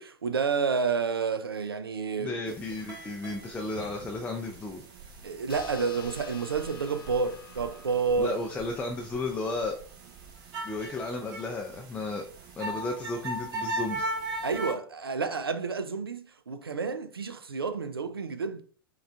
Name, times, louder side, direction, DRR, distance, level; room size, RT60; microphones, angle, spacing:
voice 1, 0.0-2.6 5.2-8.4 14.4-18.6, right 5 dB, 85° right, 0.4 m, -30 dB
voice 2, 2.2-4.8 8.2-9.8 10.6-12.2 12.6-14.1, left 2 dB, 10° left, 0.4 m, -33 dB
sound 1, 2.5-14.7, right 2 dB, 35° right, 0.9 m, -39 dB
sound 2, 5.5-10.4, left 6 dB, 70° left, 0.5 m, -50 dB
4.7 x 2.4 x 2.2 m
figure-of-eight pair, 100°, 12 cm